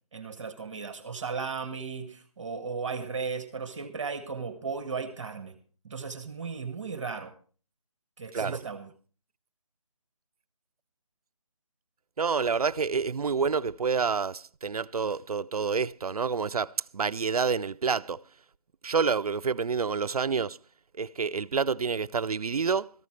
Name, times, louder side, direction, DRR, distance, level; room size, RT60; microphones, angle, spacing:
voice 1, 0.1-5.5 5.8-7.3 8.2-8.9, right 5 dB, 20° right, 1.1 m, -36 dB
voice 2, 8.3-8.7 12.2-18.2 18.8-20.6 21.0-22.9, right 5 dB, 75° right, 0.5 m, -28 dB
17.0 x 14.0 x 3.2 m
figure-of-eight pair, 165°, 19 cm